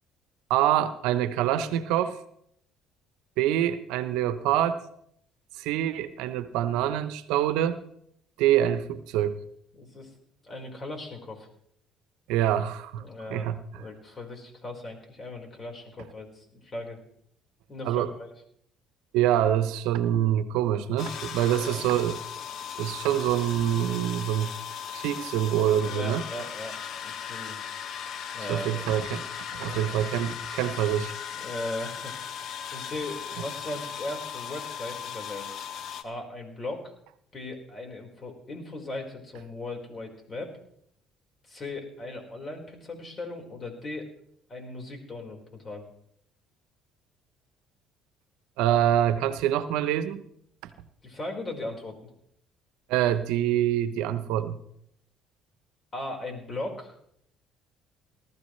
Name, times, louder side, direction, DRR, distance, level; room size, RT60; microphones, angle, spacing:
voice 1, 0.5-2.2 3.4-4.8 5.6-7.8 8.4-9.4 12.3-13.0 13.3-13.6 17.8-18.1 19.1-22.2 22.8-24.5 24.9-26.2 28.5-29.2 29.6-31.1 48.6-50.2 52.9-54.6, right 11 dB, 80° right, 12 dB, 0.8 m, -25 dB
voice 2, 9.7-10.1 10.4-11.5 13.0-13.5 13.7-17.0 17.7-18.3 21.6-21.9 25.8-27.6 28.3-28.7 29.5-30.0 31.3-32.1 32.7-35.7 36.0-36.9 37.3-40.5 41.5-44.1 44.5-45.8 51.0-52.1 55.9-56.9, left 2 dB, 35° left, 2 dB, 4.6 m, -38 dB
sound 1, 21.0-36.0, left 8 dB, 60° left, 1.1 m, -37 dB
18.5 x 13.5 x 3.2 m, 0.71 s
supercardioid pair, 80°, 0 cm